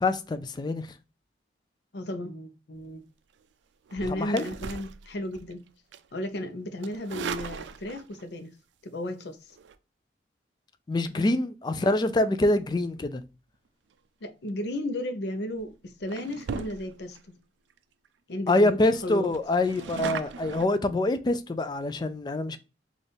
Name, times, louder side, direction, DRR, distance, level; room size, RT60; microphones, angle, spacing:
voice 1, 0.0-0.9 4.1-4.4 10.9-13.2 18.5-22.6, left 2 dB, 25° left, 0.3 m, -25 dB
voice 2, 1.9-3.0 3.9-5.6 6.1-8.5 8.8-9.6 11.1-11.2 14.2-17.4 18.3-19.3, left 1 dB, 70° left, 0.6 m, -34 dB
sound 1, 3.9-5.5 5.9-6.2 6.8-8.2 9.5-9.7 14.8-15.0 15.5-15.7 16.1-17.2 17.7-17.8 18.0-18.1 18.5-18.6 18.9-20.7, right 6 dB, 85° right, 0.3 m, -38 dB
4.1 x 2.4 x 3.4 m
head